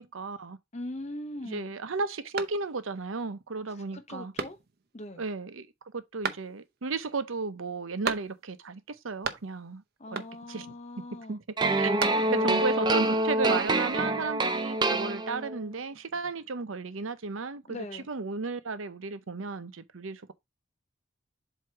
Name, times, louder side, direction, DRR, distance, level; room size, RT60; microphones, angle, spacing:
voice 1, 0.0-0.6 1.4-4.3 5.2-9.8 10.1-10.7 11.3-11.4 11.8-12.0 12.3-20.3, right 4 dB, 85° right, 0.8 m, -34 dB
voice 2, 0.7-1.7 3.9-4.6 4.9-5.2 10.0-11.4 12.0-12.6 17.7-18.1, left 1 dB, 35° left, 0.8 m, -40 dB
sound 1, 2.3-3.0 3.5-3.6 4.3-5.0 6.2-6.9 8.0-8.7 8.9-9.7 10.1-10.6 11.6-12.6, right 5 dB, 50° right, 0.7 m, -36 dB
sound 2, 11.6-15.7, right 2 dB, 20° right, 0.5 m, -26 dB
7.7 x 2.9 x 4.5 m
head